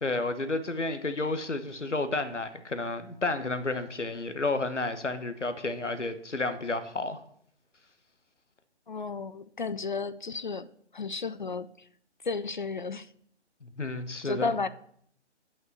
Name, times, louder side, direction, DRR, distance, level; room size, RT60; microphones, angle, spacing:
voice 1, 0.0-7.2 13.6-14.5, left 2 dB, 85° left, 1.3 m, -31 dB
voice 2, 8.9-10.7 10.9-11.7 12.2-13.1 14.2-14.7, left 4 dB, 45° left, 0.4 m, -33 dB
9.2 x 5.9 x 8.0 m
figure-of-eight pair, 140°, 35 cm